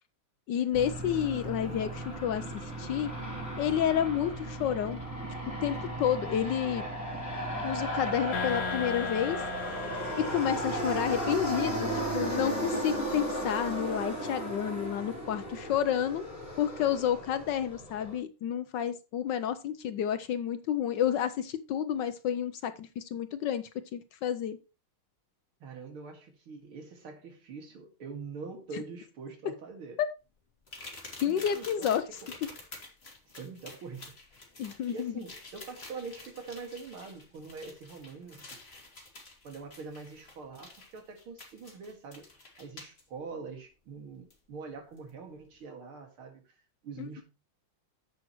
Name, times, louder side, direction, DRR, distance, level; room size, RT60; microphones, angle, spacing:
voice 1, 0.5-3.1 3.6-5.0 5.6-6.8 7.6-9.4 10.2-16.2 16.6-23.6 23.9-24.6 30.0-30.1 31.2-32.0 34.6-35.2 47.0-47.2, left 9 dB, 70° left, 1.1 m, -30 dB
Aircraft, 0.7-18.2, right 1 dB, 5° right, 3.9 m, -35 dB
sound 1, 8.3-11.8, left 7 dB, 90° left, 2.0 m, -39 dB
voice 2, 25.6-30.0 31.3-32.3 33.3-34.2 34.9-38.6 39.4-42.3 42.6-46.4 46.8-47.2, right 4 dB, 80° right, 2.8 m, -44 dB
sound 2, 30.7-43.0 44.3-44.4 45.0-45.1, left 2 dB, 30° left, 2.2 m, -49 dB
10.0 x 7.8 x 3.0 m
omnidirectional pair, 2.3 m